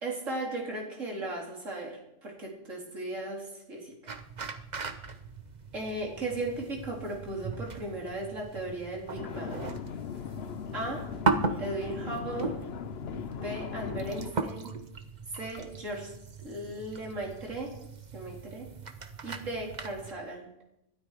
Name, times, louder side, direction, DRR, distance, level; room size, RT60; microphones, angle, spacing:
voice 1, 0.0-4.1 5.7-9.6 10.7-11.1 11.6-12.5 13.3-14.7 15.3-16.1 16.4-17.7 18.1-18.7 19.2-20.4, right 2 dB, 70° right, -1 dB, 4.2 m, -36 dB
sound 1, 4.1-20.1, right 4 dB, 35° right, 1.0 m, -37 dB
sound 2, 9.2-14.3, left 8 dB, 55° left, 0.9 m, -38 dB
21.5 x 12.5 x 5.0 m, 0.84 s
omnidirectional pair, 1.4 m